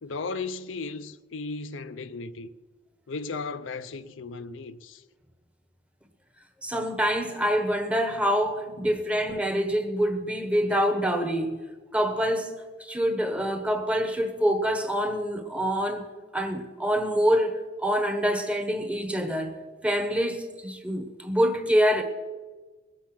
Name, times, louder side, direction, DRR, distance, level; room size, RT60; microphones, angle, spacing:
voice 1, 0.0-2.5 3.1-5.0 8.8-8.9, left 4 dB, 85° left, 0.6 m, -36 dB
voice 2, 6.6-11.6 11.9-12.5 12.8-19.6 19.8-22.0, equal, 5° right, 1.1 m, -26 dB
21.0 x 8.2 x 5.9 m
head